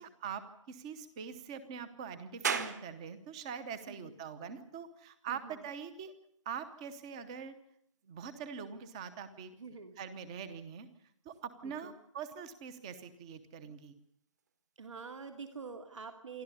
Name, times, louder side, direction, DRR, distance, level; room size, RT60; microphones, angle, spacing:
voice 1, 0.0-6.1 6.5-7.6 8.1-9.5 10.0-10.9 11.2-13.9, right 7 dB, 10° right, 13 dB, 0.8 m, -43 dB
sound 1, 2.4-15.6, right 6 dB, 35° right, 1.6 m, -46 dB
voice 2, 5.3-5.6 9.5-10.0 11.6-11.9 14.8-16.4, right 5 dB, 70° right, 6 dB, 2.6 m, -46 dB
27.5 x 12.0 x 9.7 m, 0.71 s
hypercardioid pair, 175°, 17 cm